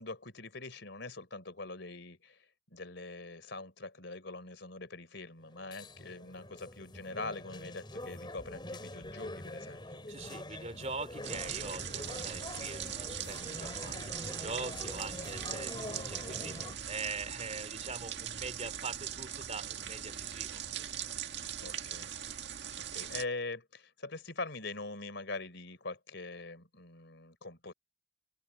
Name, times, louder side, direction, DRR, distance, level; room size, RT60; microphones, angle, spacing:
voice 1, 0.0-10.2 15.8-16.1 21.6-22.1 22.9-27.7, left 3 dB, 60° left, 4.0 m, -43 dB
sound 1, 5.4-16.7, left 1 dB, 25° left, 5.4 m, -45 dB
voice 2, 10.1-20.9, right 4 dB, 35° right, 2.8 m, -43 dB
sound 2, 11.2-23.2, right 9 dB, 60° right, 2.1 m, -40 dB
open air
head